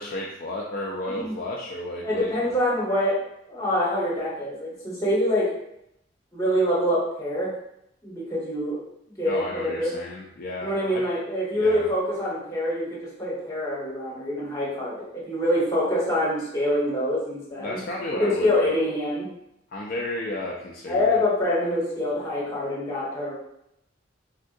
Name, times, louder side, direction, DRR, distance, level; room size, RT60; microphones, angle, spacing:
voice 1, 0.0-2.3 9.3-11.0 11.5-11.9 17.6-18.7 19.7-21.2, left 1 dB, 50° left, -2 dB, 0.4 m, -32 dB
voice 2, 2.0-3.2 3.5-5.5 6.3-7.5 8.0-8.8 9.2-9.9 10.6-17.8 18.2-19.3 20.9-23.3, left 1 dB, 20° left, -7 dB, 1.2 m, -25 dB
3.5 x 2.4 x 2.6 m, 0.77 s
head